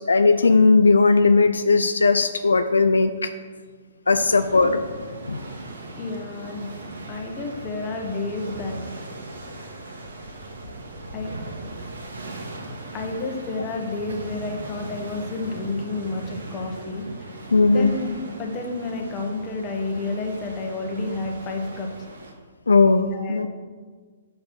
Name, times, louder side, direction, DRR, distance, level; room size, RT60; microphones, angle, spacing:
voice 1, 0.0-3.3 4.1-4.8 5.2-5.4 17.5-17.9 22.7-23.5, left 3 dB, 85° left, 8 dB, 0.3 m, -18 dB
sound 1, 4.1-22.3, right 2 dB, 75° right, 1.5 m, -38 dB
voice 2, 6.0-8.8 11.1-11.3 12.9-17.1 17.7-21.9 23.1-23.5, left 3 dB, 30° left, 2 dB, 1.1 m, -30 dB
6.6 x 4.0 x 5.8 m, 1.5 s
hypercardioid pair, 125°, 0 cm